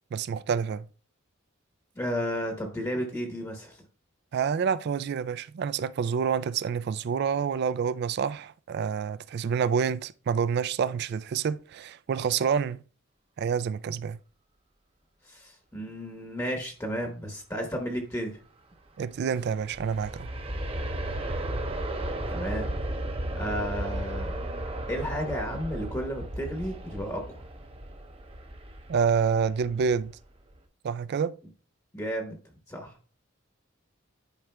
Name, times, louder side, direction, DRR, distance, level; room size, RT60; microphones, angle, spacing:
voice 1, 0.1-0.9 4.3-12.8 13.4-14.2 19.0-20.3 28.9-30.1 30.8-31.4, right 6 dB, 55° right, 0.3 m, -28 dB
voice 2, 1.9-3.8 15.2-18.4 22.3-22.7 23.4-24.4 24.9-27.4 31.9-32.4 32.7-33.0, equal, 15° left, 1.0 m, -33 dB
Aircraft, 19.4-30.1 30.5-30.6, right 1 dB, 30° right, 0.7 m, -34 dB
10.5 x 4.9 x 2.2 m
head